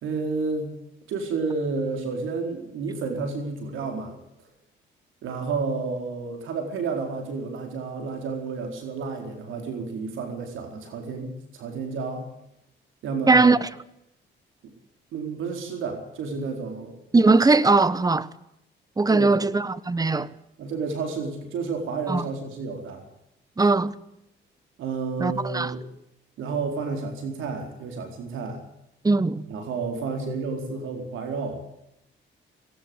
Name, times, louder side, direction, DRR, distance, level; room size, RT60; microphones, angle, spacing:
voice 1, 0.0-0.7 1.1-4.2 5.2-12.3 13.0-13.6 15.1-17.0 19.1-19.4 20.6-23.0 24.8-25.8 26.4-28.6 29.5-31.6, right 4 dB, 80° right, 4.4 m, -31 dB
voice 2, 13.3-13.7 17.1-18.3 19.0-20.3 22.1-22.2 23.6-24.0 25.2-25.7 29.0-29.5, right 3 dB, 20° right, 1.2 m, -20 dB
19.5 x 18.0 x 8.0 m
cardioid pair, 90°, 20 cm